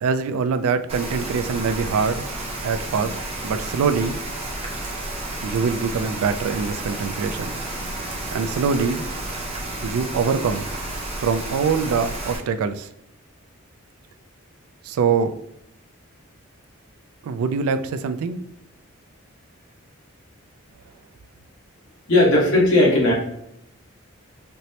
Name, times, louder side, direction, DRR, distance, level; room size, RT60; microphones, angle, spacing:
voice 1, 0.0-2.2 2.6-3.2 3.4-4.2 5.4-7.6 8.3-9.0 9.8-10.7 11.2-12.9 14.8-15.3 17.2-18.4, right 5 dB, 85° right, 10 dB, 0.3 m, -23 dB
Rain, 0.9-12.4, right 1 dB, 30° right, 0.6 m, -31 dB
voice 2, 22.1-23.1, left 1 dB, 60° left, -4 dB, 1.3 m, -16 dB
4.4 x 2.0 x 2.8 m, 0.78 s
head